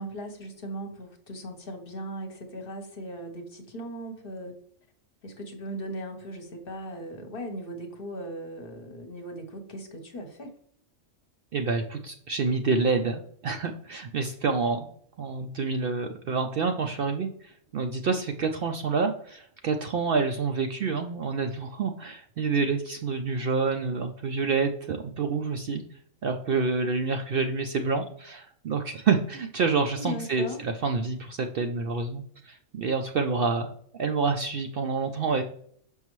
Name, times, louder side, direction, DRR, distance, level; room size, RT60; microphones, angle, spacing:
voice 1, 0.0-4.6 5.2-10.5 29.9-30.6, right 1 dB, 50° left, 4 dB, 1.0 m, -38 dB
voice 2, 11.5-14.9 15.2-25.8 26.2-33.7 34.0-35.4, right 4 dB, 60° right, 5 dB, 0.6 m, -28 dB
6.3 x 5.4 x 3.0 m, 0.62 s
omnidirectional pair, 1.3 m